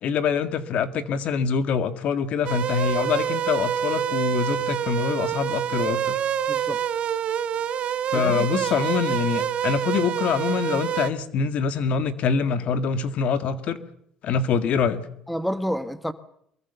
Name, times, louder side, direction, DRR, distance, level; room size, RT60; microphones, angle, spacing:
voice 1, 0.0-6.2 8.1-13.8 14.2-15.0, left 6 dB, 55° left, 11 dB, 1.9 m, -25 dB
sound 1, 2.4-11.1, right 9 dB, 50° right, 1.3 m, -26 dB
voice 2, 6.5-6.8 8.1-8.7 15.3-16.1, equal, ahead, 12 dB, 1.2 m, -30 dB
24.0 x 22.0 x 6.9 m, 0.71 s
cardioid pair, 115°, 3 cm